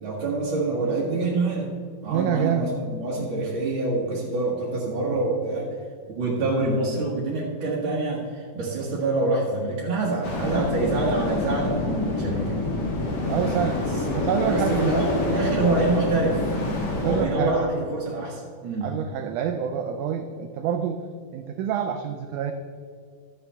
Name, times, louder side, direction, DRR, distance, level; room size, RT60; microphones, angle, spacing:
voice 1, 0.0-1.8 2.0-5.8 6.1-12.6 13.3-16.4 17.0-18.9, right 2 dB, 50° right, -5 dB, 1.7 m, -26 dB
voice 2, 2.1-2.7 13.3-13.8 14.1-14.9 16.9-17.6 18.8-21.0 21.3-22.5, right 8 dB, 85° right, 6 dB, 1.8 m, -27 dB
sound 1, 10.2-17.3, left 2 dB, 65° left, 1.0 m, -27 dB
13.0 x 9.5 x 3.4 m, 2.2 s
omnidirectional pair, 4.3 m